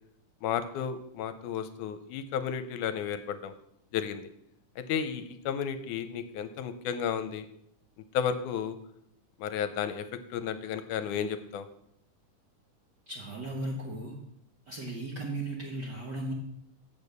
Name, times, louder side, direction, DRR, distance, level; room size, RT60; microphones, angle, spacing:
voice 1, 0.4-3.5 3.9-4.3 4.8-7.5 8.1-8.8 9.4-10.1 10.3-11.7, left 8 dB, 80° left, 11 dB, 2.1 m, -33 dB
voice 2, 13.1-14.2 14.7-16.3, right 2 dB, 55° right, -1 dB, 1.2 m, -36 dB
8.2 x 7.0 x 6.7 m, 0.75 s
omnidirectional pair, 3.6 m